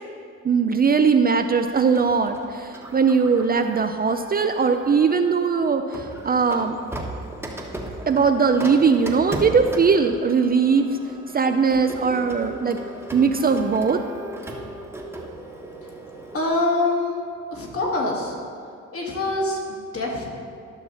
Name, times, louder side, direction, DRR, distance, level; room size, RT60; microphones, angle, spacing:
voice 1, 0.4-6.8 8.1-11.0 11.3-12.8 13.1-14.0, right 5 dB, 30° right, 7 dB, 0.4 m, -20 dB
Printer, 2.0-5.2 5.9-16.5, right 1 dB, 10° right, 1.3 m, -37 dB
voice 2, 16.3-17.2 17.5-18.4 18.9-20.3, left 2 dB, 50° left, -2 dB, 2.0 m, -25 dB
12.0 x 6.0 x 4.2 m, 2.5 s
cardioid pair, 90°, 30 cm